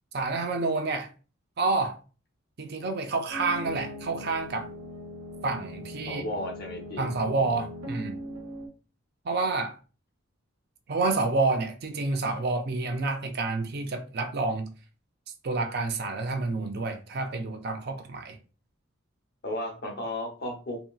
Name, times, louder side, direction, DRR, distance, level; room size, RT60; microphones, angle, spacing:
voice 1, 0.1-1.1 1.6-2.0 2.6-4.7 5.4-6.2 7.0-8.2 9.2-9.8 10.9-14.7 15.4-18.4, right 3 dB, 50° right, 0.5 m, -29 dB
sound 1, 3.3-8.7, equal, 80° right, 0.8 m, -40 dB
voice 2, 6.1-7.1 19.4-20.8, left 1 dB, 50° left, 0.8 m, -34 dB
2.8 x 2.8 x 2.3 m
head